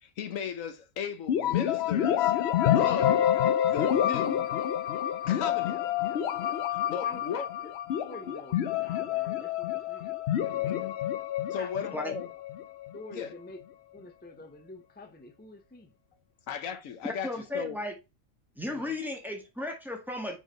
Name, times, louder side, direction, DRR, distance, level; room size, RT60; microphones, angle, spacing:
voice 1, 0.0-2.3 2.7-4.5 5.3-5.8 6.7-7.5 10.6-11.0 11.5-12.3 13.1-13.3 16.5-17.8 18.7-18.9, left 7 dB, 80° left, 1.2 m, -37 dB
sound 1, 1.3-13.0, left 10 dB, 60° left, 0.8 m, -28 dB
voice 2, 7.0-7.4 8.1-10.9 11.5-12.0 12.9-13.6 13.9-15.9, left 2 dB, 15° left, 0.3 m, -47 dB
voice 3, 17.2-17.9 18.6-20.4, left 2 dB, ahead, 1.5 m, -35 dB
4.7 x 4.6 x 4.4 m
omnidirectional pair, 1.4 m